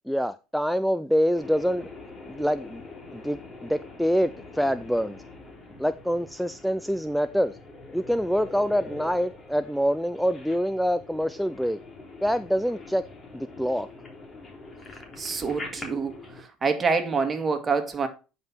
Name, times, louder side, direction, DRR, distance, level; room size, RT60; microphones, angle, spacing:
voice 1, 0.1-1.9 2.3-2.8 3.1-5.2 5.8-7.6 7.9-11.8 12.2-13.0 13.3-13.9, equal, ahead, 0.4 m, -25 dB
sound 1, 1.3-16.4, left 3 dB, 25° left, 3.3 m, -44 dB
voice 2, 15.2-18.1, right 4 dB, 25° right, 2.0 m, -27 dB
9.4 x 5.4 x 4.4 m
supercardioid pair, 100°, 0 cm